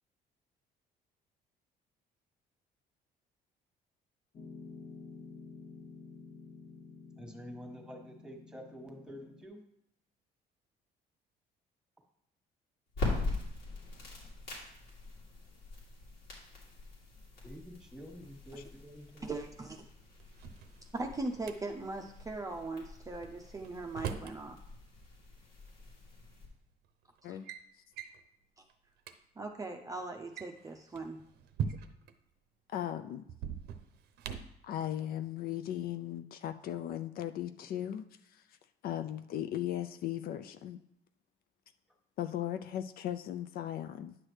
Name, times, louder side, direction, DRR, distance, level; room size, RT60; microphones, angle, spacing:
Piano, 4.3-9.4, left 4 dB, 35° left, 0.8 m, -50 dB
voice 1, 7.2-9.6 17.4-19.4, equal, 5° right, 2 dB, 1.4 m, -48 dB
sound 1, 12.9-26.5, left 2 dB, 90° left, 2.8 m, -42 dB
voice 2, 19.2-19.9 20.9-24.6 27.3-27.4 28.6-28.7 29.4-31.2, right 2 dB, 20° right, 3 dB, 0.6 m, -40 dB
Drawer open or close, 20.2-21.6 23.2-24.4 25.7-25.8 26.6-26.9 27.2-27.6 28.0-28.2 28.7-28.8 29.0-29.2 30.2-32.1 33.3-34.6, right 7 dB, 75° right, 0.7 m, -41 dB
voice 3, 32.7-33.2 34.6-38.0 38.3-38.4 38.8-40.8 42.2-44.2, left 11 dB, 60° left, 9 dB, 0.4 m, -37 dB
9.9 x 6.1 x 3.2 m, 0.76 s
cardioid pair, 110°, 17 cm